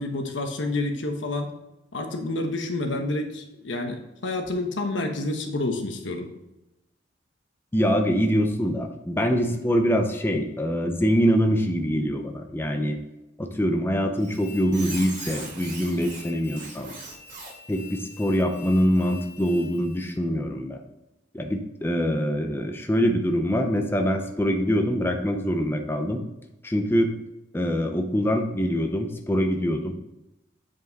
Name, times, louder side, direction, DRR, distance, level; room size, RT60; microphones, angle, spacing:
voice 1, 0.0-1.5 1.9-6.3, left 2 dB, 85° left, 4 dB, 1.1 m, -29 dB
voice 2, 7.7-13.0 13.4-16.9 17.7-20.8 21.3-26.2 26.6-27.1 27.5-29.9, equal, 10° left, 4 dB, 0.6 m, -24 dB
Squeak, 14.2-20.1, right 1 dB, 45° right, 2.5 m, -41 dB
7.7 x 5.3 x 4.0 m, 0.94 s
head